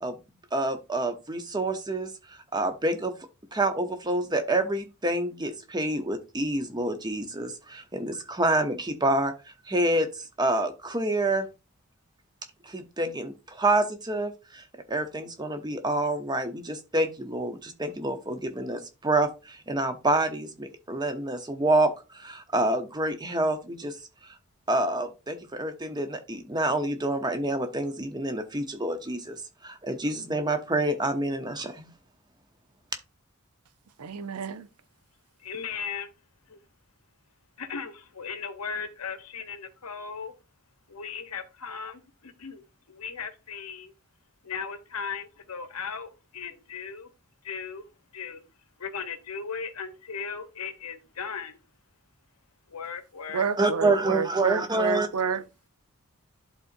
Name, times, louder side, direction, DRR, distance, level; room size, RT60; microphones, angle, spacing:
voice 1, 0.5-3.1 3.5-9.3 9.7-11.5 12.6-24.0 24.2-24.3 24.7-29.4 29.6-31.9 53.6-55.1, right 2 dB, 20° right, 0.8 m, -27 dB
voice 2, 34.0-34.7 53.3-55.4, right 6 dB, 85° right, 0.6 m, -29 dB
voice 3, 35.4-36.1 36.5-36.6 37.6-40.3 40.9-43.9 44.4-47.1 47.4-47.8 48.1-48.4 48.8-51.6 52.7-53.4, left 6 dB, 80° left, 1.0 m, -37 dB
11.5 x 3.9 x 2.6 m
head